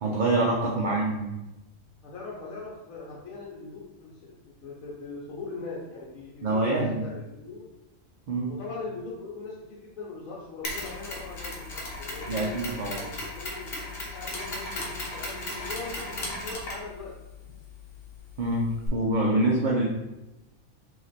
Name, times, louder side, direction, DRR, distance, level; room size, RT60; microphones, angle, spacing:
voice 1, 0.0-1.3 6.4-7.1 8.3-8.5 12.3-13.0 18.4-19.9, right 2 dB, 55° right, -3 dB, 0.5 m, -25 dB
voice 2, 2.0-7.7 8.5-12.5 12.8-13.8 14.1-17.1, left 3 dB, 90° left, -5 dB, 1.1 m, -40 dB
Mechanisms, 10.6-18.9, left 2 dB, 55° left, 1.0 m, -37 dB
3.2 x 2.8 x 3.9 m, 0.98 s
omnidirectional pair, 1.4 m